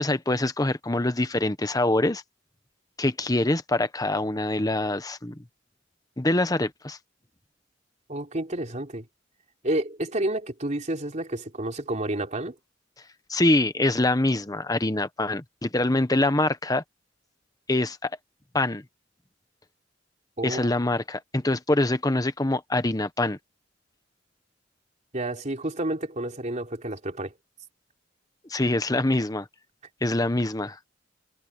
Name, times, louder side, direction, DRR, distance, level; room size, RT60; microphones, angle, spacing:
voice 1, 0.0-2.2 3.0-5.4 6.2-7.0 13.3-16.8 17.7-18.1 18.5-18.8 20.4-23.4 28.5-29.5 30.0-30.8, left 2 dB, 20° left, 1.2 m, -24 dB
voice 2, 8.1-9.1 9.6-12.5 20.4-20.7 25.1-27.3, right 1 dB, 40° right, 3.5 m, -30 dB
head